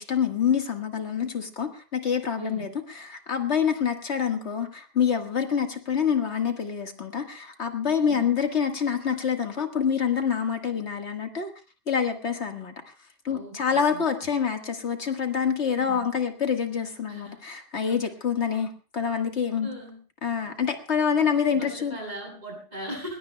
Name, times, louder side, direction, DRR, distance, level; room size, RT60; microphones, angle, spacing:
voice 1, 0.0-2.7 3.0-11.5 11.9-12.7 13.3-19.7 20.2-22.0, left 7 dB, 80° left, 5 dB, 2.0 m, -26 dB
voice 2, 2.4-2.7 8.0-8.3 13.3-14.3 15.7-16.1 17.1-17.4 19.6-20.0 21.5-23.2, equal, 40° right, -1 dB, 8.3 m, -39 dB
21.5 x 20.0 x 2.3 m, 0.35 s
omnidirectional pair, 1.1 m